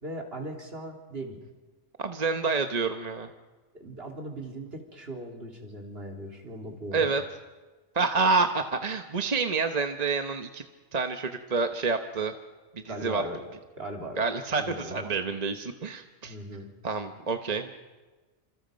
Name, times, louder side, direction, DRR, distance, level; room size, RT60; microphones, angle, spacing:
voice 1, 0.0-1.4 3.7-7.1 12.9-13.4 13.8-14.2 14.6-15.1 16.2-16.7, right 1 dB, 55° right, 1 dB, 3.6 m, -39 dB
voice 2, 2.0-3.3 6.9-7.2 7.9-10.6 10.9-12.3 12.7-13.2 14.2-16.3 16.8-17.7, right 4 dB, 35° right, 6 dB, 1.0 m, -28 dB
27.5 x 26.5 x 5.2 m, 1.3 s
omnidirectional pair, 1.2 m